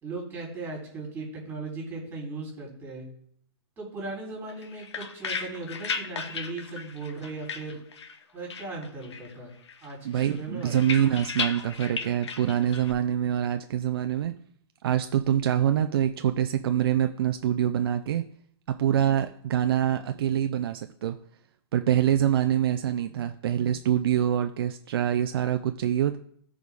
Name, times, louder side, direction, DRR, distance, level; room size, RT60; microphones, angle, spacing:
voice 1, 0.0-3.0 3.8-7.8 8.3-9.5 9.8-10.0 10.3-10.9, right 3 dB, 15° right, -2 dB, 3.7 m, -37 dB
sound 1, 4.5-8.2 8.5-9.4 9.7-12.9, left 5 dB, 80° left, 1.2 m, -35 dB
voice 2, 10.0-14.3 14.8-18.2 18.8-21.2 21.7-26.2, right 10 dB, 60° right, 8 dB, 0.5 m, -25 dB
13.5 x 4.9 x 3.6 m, 0.65 s
hypercardioid pair, 160°, 14 cm